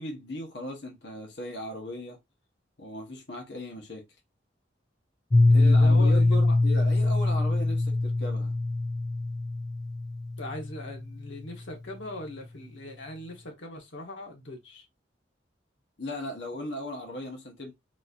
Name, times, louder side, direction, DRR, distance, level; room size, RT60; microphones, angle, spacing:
voice 1, 0.0-2.2 2.8-4.1 5.5-8.5 16.0-17.7, left 1 dB, 70° left, 1.0 m, -37 dB
Piano, 5.3-10.9, left 2 dB, 20° left, 0.4 m, -23 dB
voice 2, 5.5-6.6 10.4-14.8, left 1 dB, 85° left, 1.1 m, -40 dB
4.1 x 2.7 x 2.4 m
head